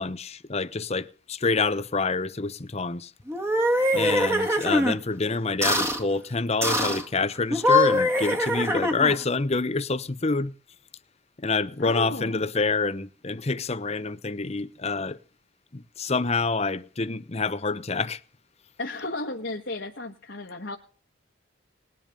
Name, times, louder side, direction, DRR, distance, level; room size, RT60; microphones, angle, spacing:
voice 1, 0.0-3.1 3.9-10.5 11.4-15.2 15.7-18.2, left 3 dB, 35° left, 0.9 m, -27 dB
sound 1, 3.3-5.0 5.6-6.0 6.6-7.0 7.5-9.2, left 1 dB, 15° right, 1.8 m, -23 dB
voice 2, 3.9-4.5 11.8-12.4 18.8-20.8, left 2 dB, 60° left, 1.5 m, -34 dB
19.5 x 10.5 x 5.4 m
head